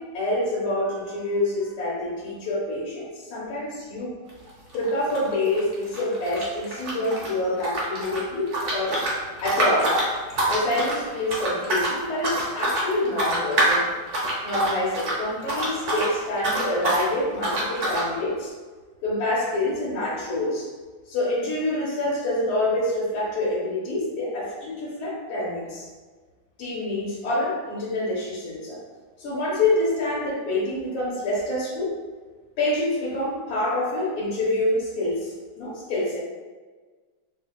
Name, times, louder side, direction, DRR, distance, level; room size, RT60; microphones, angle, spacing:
voice 1, 0.0-4.1 4.7-9.0 9.4-10.0 10.5-13.9 14.4-18.5 19.0-20.7 21.1-25.9 26.6-28.8 29.2-31.9 32.6-36.2, left 1 dB, 80° left, -8 dB, 1.7 m, -26 dB
sound 1, 4.3-4.5 4.7-7.3 7.6-16.1 16.4-17.1 17.4-18.1, right 1 dB, 60° right, 0.7 m, -26 dB
4.8 x 2.1 x 2.3 m, 1.4 s
omnidirectional pair, 2.2 m